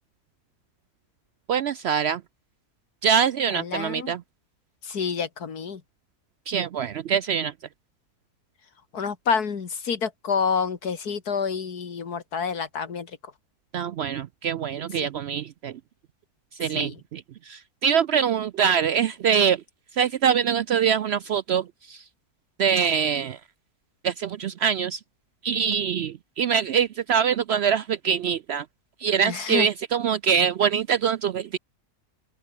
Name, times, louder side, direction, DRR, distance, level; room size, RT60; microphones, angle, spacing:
voice 1, 1.5-2.2 3.0-4.2 6.5-7.5 13.7-15.7 16.6-17.2 17.5-19.6 20.0-22.0 22.6-23.4 24.0-25.0 25.4-28.6 29.0-31.6, right 7 dB, 70° right, 0.6 m, -24 dB
voice 2, 3.5-4.1 4.9-5.8 8.9-13.1 16.7-16.9 29.2-29.7, left 6 dB, 85° left, 2.4 m, -28 dB
open air
omnidirectional pair, 1.6 m